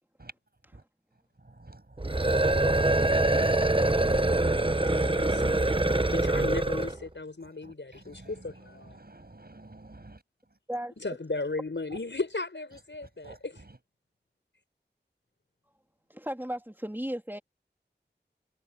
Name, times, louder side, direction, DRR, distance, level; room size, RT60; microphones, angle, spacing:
voice 1, 1.4-4.2 5.0-5.5 7.4-10.2 11.9-12.0 13.2-13.8, right 2 dB, 60° right, 7.2 m, -51 dB
sound 1, 2.0-7.0, right 2 dB, 30° right, 1.0 m, -24 dB
voice 2, 4.9-9.0 11.0-13.6, left 3 dB, 85° left, 6.4 m, -36 dB
voice 3, 16.1-17.4, right 1 dB, 10° right, 3.2 m, -35 dB
wide cardioid pair, 50°, 18 cm